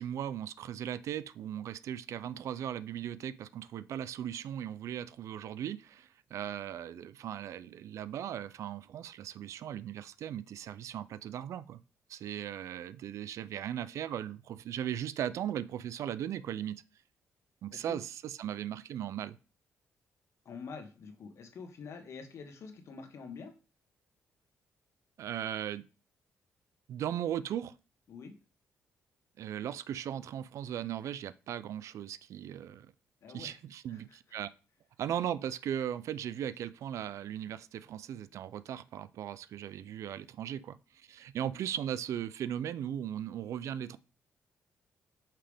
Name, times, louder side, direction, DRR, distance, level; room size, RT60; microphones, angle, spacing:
voice 1, 0.0-11.8 12.1-16.8 17.6-19.4 25.2-25.8 26.9-27.7 29.4-32.9 33.3-34.5 35.0-44.0, right 10 dB, 75° right, 0.4 m, -38 dB
voice 2, 17.7-18.0 20.4-23.5 28.1-28.3 33.2-33.6 33.9-34.2, left 5 dB, 65° left, 1.2 m, -46 dB
5.7 x 4.9 x 3.5 m
cardioid pair, 80°, 5 cm